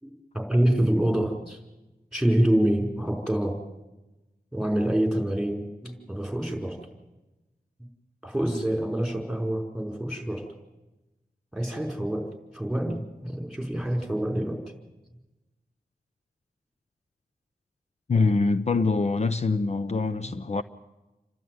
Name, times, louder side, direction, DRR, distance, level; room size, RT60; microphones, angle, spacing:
voice 1, 0.0-1.6 2.1-3.6 4.5-6.9 8.2-10.5 11.5-14.6 20.2-20.3, right 1 dB, ahead, 5.0 m, -26 dB
voice 2, 18.1-20.6, left 3 dB, 45° left, 0.7 m, -24 dB
28.5 x 12.5 x 9.4 m
wide cardioid pair, 85°, 16 cm